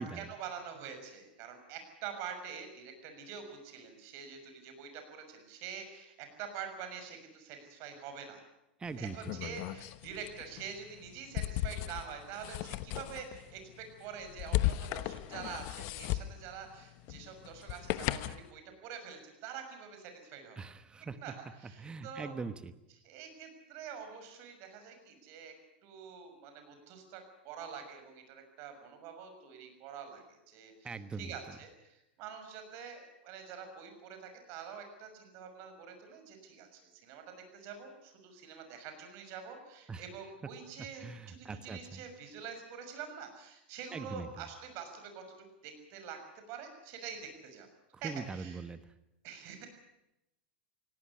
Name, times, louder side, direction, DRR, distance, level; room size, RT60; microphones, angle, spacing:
voice 1, 0.0-8.4 9.0-20.6 21.2-22.4 23.0-25.5 25.8-37.2 37.5-46.2 46.5-47.7 48.0-48.6 49.2-49.7, right 7 dB, 55° right, 6 dB, 6.3 m, -46 dB
sound 1, 8.8-18.5, left 15 dB, 55° left, 1.1 m, -37 dB
voice 2, 8.8-9.2 9.4-9.6 20.6-21.3 21.8-22.7 30.8-31.3 39.9-40.0 41.0-42.0 43.9-44.3 48.0-48.8, right 4 dB, 15° right, 12 dB, 1.2 m, -41 dB
18.5 x 17.5 x 9.9 m, 0.88 s
hypercardioid pair, 105°, 5 cm